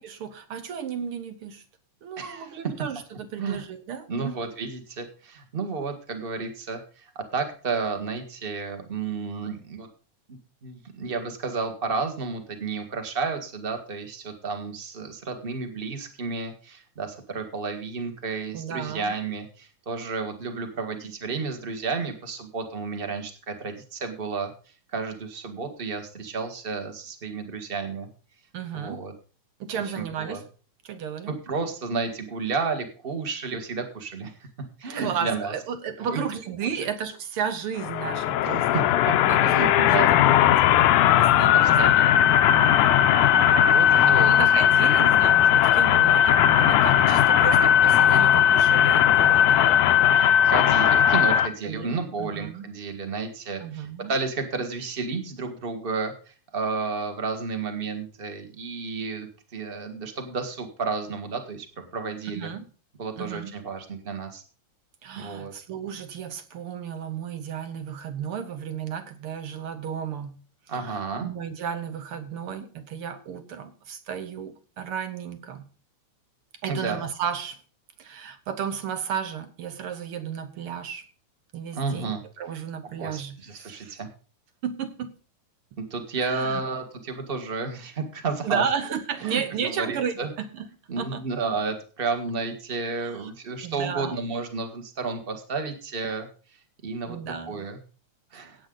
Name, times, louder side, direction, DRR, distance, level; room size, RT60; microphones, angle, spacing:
voice 1, 0.0-1.6 2.0-4.5 18.5-19.1 28.5-29.1 29.6-30.4 30.8-31.3 34.9-38.7 39.3-42.1 42.4-42.7 43.1-43.5 43.9-49.8 51.6-52.7 53.6-54.1 62.3-62.6 63.2-63.5 65.0-70.4 70.7-75.7 76.6-77.6 78.0-81.1 81.5-84.0 84.6-85.2 86.2-86.6 88.4-90.6 91.0-91.3 93.0-93.3 93.6-94.2 97.1-97.6 98.3-98.5, right 7 dB, 65° right, 10 dB, 1.4 m, -33 dB
voice 2, 2.2-2.6 3.4-3.6 4.1-9.9 10.6-24.5 24.9-28.1 28.7-29.1 29.7-30.4 31.3-34.3 34.8-35.5 36.0-36.2 36.7-36.9 38.7-38.8 39.5-40.1 41.5-42.4 43.5-44.3 50.1-62.5 63.0-64.4 65.2-65.5 70.7-71.3 76.7-77.0 81.7-82.2 83.0-84.1 85.8-88.6 89.2-90.3 90.9-96.3 96.8-97.2 97.5-97.8 98.3-98.6, right 4 dB, 25° right, 6 dB, 1.3 m, -32 dB
sound 1, 37.8-51.5, left 10 dB, 80° left, 2.2 m, -18 dB
16.5 x 8.7 x 3.9 m, 0.38 s
omnidirectional pair, 3.5 m